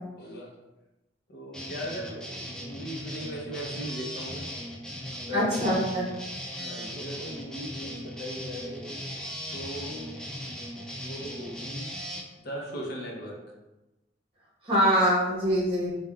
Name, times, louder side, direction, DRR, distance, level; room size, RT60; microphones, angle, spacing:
voice 1, 0.2-0.6 1.3-4.5 5.3-5.5 6.6-9.0 9.5-10.2 11.0-11.9 12.4-13.4, equal, 55° left, -1 dB, 0.6 m, -38 dB
sound 1, 1.5-12.2, equal, 5° left, 0.3 m, -38 dB
voice 2, 5.3-6.1 14.6-15.9, equal, 30° right, -6 dB, 0.9 m, -24 dB
3.4 x 2.2 x 2.3 m, 1.0 s
head